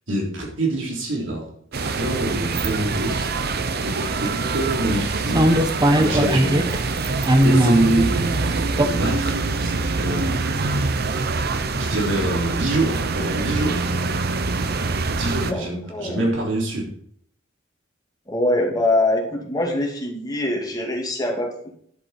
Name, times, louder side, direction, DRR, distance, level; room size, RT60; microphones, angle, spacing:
voice 1, 0.1-3.3 3.8-6.9 7.4-10.7 11.8-14.0 15.1-16.9, right 1 dB, 70° right, 3.5 m, -26 dB
sound 1, 1.7-15.5, right 3 dB, 55° right, 0.9 m, -25 dB
sound 2, 2.6-2.7 4.1-4.4 5.0-5.1 5.3-6.8 7.0-7.8 8.8-8.9, right 1 dB, 20° right, 1.0 m, -18 dB
voice 2, 15.5-16.3 18.3-21.8, left 1 dB, 20° left, 2.5 m, -24 dB
10.5 x 8.6 x 4.4 m
head